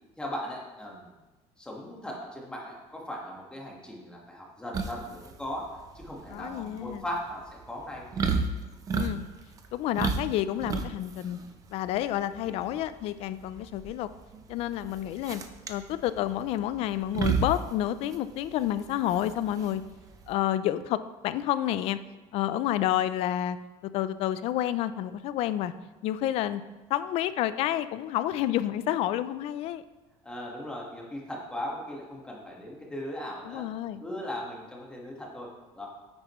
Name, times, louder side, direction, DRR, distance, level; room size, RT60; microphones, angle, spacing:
voice 1, 0.2-1.1 1.6-5.7 5.9-8.1 12.4-12.8 30.2-33.6 34.0-35.9, left 1 dB, 5° left, -2 dB, 1.6 m, -38 dB
sound 1, 4.7-20.3, right 4 dB, 30° right, 0.7 m, -33 dB
voice 2, 6.3-7.0 8.9-9.3 9.7-11.4 11.7-14.1 14.5-15.4 15.7-19.8 20.3-22.0 22.3-23.6 23.8-25.7 26.0-26.6 26.9-29.8 33.4-34.0, left 12 dB, 55° left, 14 dB, 0.4 m, -29 dB
10.0 x 8.7 x 3.1 m, 1.1 s
cardioid pair, 155°, 12 cm